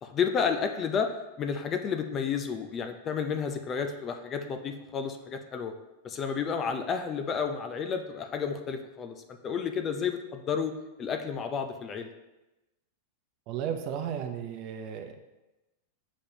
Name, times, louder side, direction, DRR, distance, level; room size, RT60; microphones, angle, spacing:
voice 1, 0.0-1.1 1.4-5.7 6.0-9.1 9.4-12.1, left 6 dB, 30° left, 6 dB, 0.5 m, -31 dB
voice 2, 13.5-15.2, right 8 dB, 50° right, 6 dB, 0.7 m, -34 dB
6.9 x 5.2 x 2.8 m, 1.0 s
hypercardioid pair, 120°, 0 cm